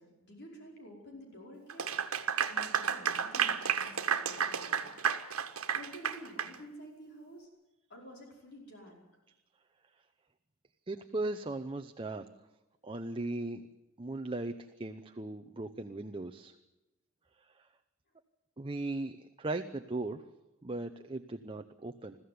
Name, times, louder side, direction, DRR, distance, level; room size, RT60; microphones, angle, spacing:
voice 1, 0.0-2.0 2.5-4.9 5.7-7.5 7.9-9.0, equal, 55° left, 0 dB, 5.2 m, -50 dB
Clapping / Applause, 1.7-6.5, right 7 dB, 85° right, 1.5 m, -32 dB
voice 2, 10.9-12.2 12.8-13.6 14.0-16.5 18.6-20.2 20.6-22.2, right 2 dB, 25° right, 7 dB, 0.8 m, -38 dB
21.5 x 15.0 x 9.5 m, 0.98 s
head